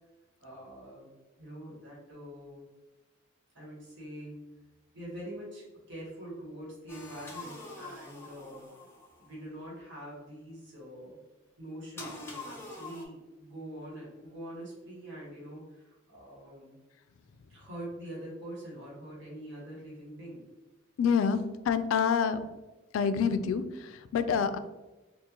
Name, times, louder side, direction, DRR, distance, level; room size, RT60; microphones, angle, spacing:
voice 1, 0.4-1.1 1.4-2.6 3.5-4.4 4.9-8.6 9.2-11.2 11.6-16.7 17.5-20.4, right 1 dB, 65° right, -6 dB, 1.4 m, -44 dB
sound 1, 6.9-9.3 12.0-13.0, left 2 dB, 10° left, 0.6 m, -45 dB
voice 2, 21.0-22.4 22.9-24.6, left 6 dB, 85° left, 11 dB, 0.3 m, -27 dB
3.7 x 2.4 x 2.9 m, 1.1 s
head